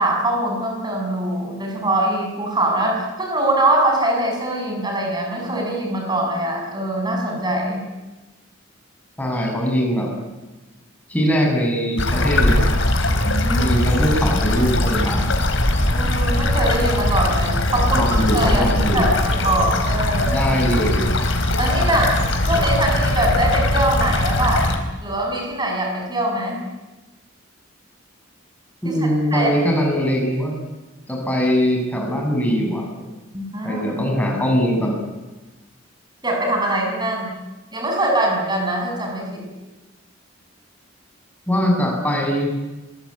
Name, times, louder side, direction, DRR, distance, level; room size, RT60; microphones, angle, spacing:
voice 1, 0.0-7.8 13.2-13.8 15.9-18.6 18.9-20.4 21.6-22.2 22.5-26.6 28.8-29.0 29.3-29.5 33.3-33.8 36.2-37.3 37.7-39.4, right 1 dB, 20° right, 1 dB, 7.8 m, -22 dB
voice 2, 9.2-10.1 11.1-12.7 13.6-15.2 17.8-19.0 20.3-21.1 28.8-30.5 31.1-32.8 33.6-35.0 41.5-42.5, equal, 10° left, 0 dB, 7.4 m, -21 dB
sound 1, 12.0-24.8, left 1 dB, 65° left, 3.8 m, -20 dB
26.0 x 22.5 x 8.9 m, 1.1 s
head